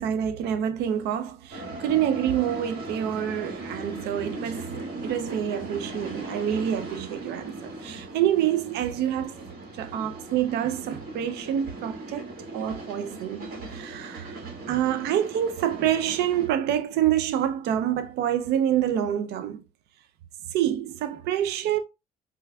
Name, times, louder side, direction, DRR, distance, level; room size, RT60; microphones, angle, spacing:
voice 1, 0.0-4.7 5.0-9.5 9.8-14.4 14.7-19.6 20.5-21.8, right 10 dB, 80° right, 0.4 m, -27 dB
sound 1, 1.5-16.5, right 2 dB, 60° right, 1.7 m, -39 dB
5.6 x 2.5 x 2.2 m
cardioid pair, 110°, 17 cm